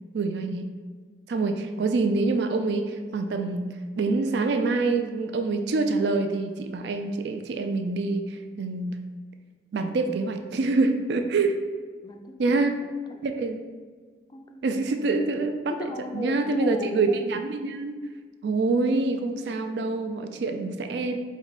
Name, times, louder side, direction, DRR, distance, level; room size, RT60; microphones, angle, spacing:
voice 1, 0.1-0.7 1.3-3.7 4.0-9.0 9.7-11.6 12.4-12.8 13.2-13.6 14.6-15.7 16.1-18.0 18.4-21.2, right 3 dB, 70° right, 6 dB, 0.4 m, -26 dB
voice 2, 12.0-12.6 13.1-13.2 14.3-14.9 15.7-17.2, left 2 dB, 25° left, 5 dB, 0.3 m, -37 dB
4.6 x 2.7 x 3.9 m, 1.5 s
head